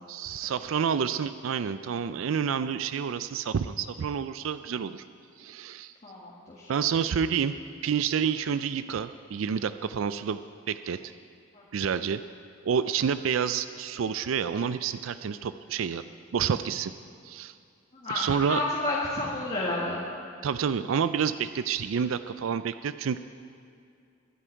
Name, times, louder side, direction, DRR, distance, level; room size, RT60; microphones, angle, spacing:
voice 1, 0.1-5.0 5.4-5.9 6.7-7.6 7.8-11.0 11.7-12.2 12.6-16.0 16.3-16.9 17.2-17.5 18.1-18.6 20.4-23.2, right 7 dB, 85° right, 12 dB, 0.4 m, -29 dB
voice 2, 6.0-6.7 11.5-11.6 18.0-20.0, left 2 dB, 35° left, -5 dB, 1.8 m, -31 dB
22.5 x 9.9 x 4.6 m, 2.4 s
head